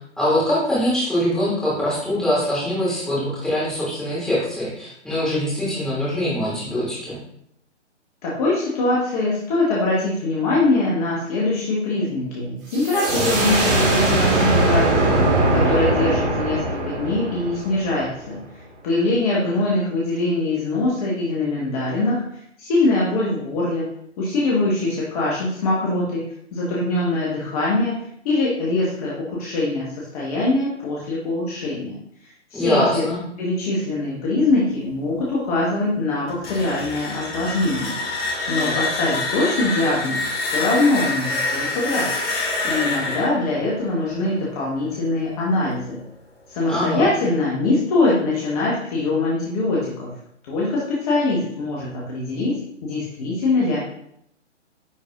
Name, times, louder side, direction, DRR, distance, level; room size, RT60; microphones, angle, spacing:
voice 1, 0.2-7.2 32.5-33.2 46.7-47.0, equal, ahead, -9 dB, 2.7 m, -23 dB
voice 2, 8.2-15.0 15.5-18.4 18.8-22.2 22.6-23.9 24.2-26.2 26.5-32.0 32.5-33.1 33.4-38.0 38.5-42.1 42.6-46.0 46.5-50.1 50.4-52.5 52.8-53.8, left 2 dB, 30° left, -5 dB, 1.5 m, -22 dB
sound 1, 12.7-18.3, right 2 dB, 45° right, 2.1 m, -20 dB
sound 2, 36.3-45.1, left 2 dB, 55° left, 2.1 m, -27 dB
9.9 x 4.6 x 2.6 m, 0.72 s
figure-of-eight pair, 140°, 36 cm